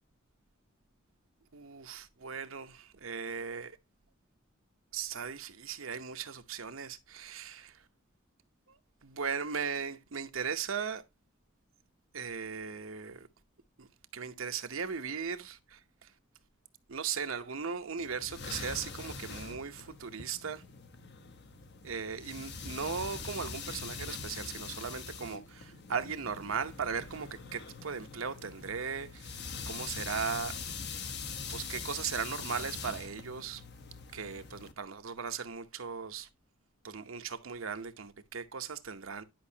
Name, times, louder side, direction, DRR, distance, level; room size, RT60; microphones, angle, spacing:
voice 1, 1.5-3.7 4.9-7.8 8.7-11.0 12.1-13.3 13.8-13.9 14.1-16.1 16.9-20.6 21.8-30.6 31.5-33.6 34.1-36.3 36.8-39.2, right 6 dB, 75° right, 0.9 m, -38 dB
sound 1, 18.0-34.7, left 5 dB, 55° left, 1.0 m, -43 dB
10.5 x 5.3 x 2.8 m
head